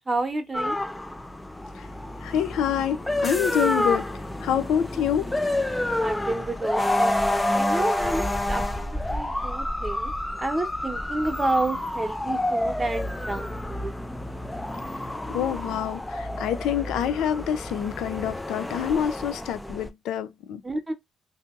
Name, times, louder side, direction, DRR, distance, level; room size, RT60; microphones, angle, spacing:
voice 1, 0.1-0.8 6.0-7.2 7.6-10.1 10.4-13.9 20.6-20.9, right 2 dB, 20° right, 1.0 m, -30 dB
sound 1, 0.5-19.9, left 1 dB, 10° left, 0.4 m, -29 dB
voice 2, 2.2-4.1 4.4-5.3 15.3-20.6, left 9 dB, 85° left, 0.5 m, -27 dB
2.7 x 2.6 x 3.6 m
cardioid pair, 90°, 0 cm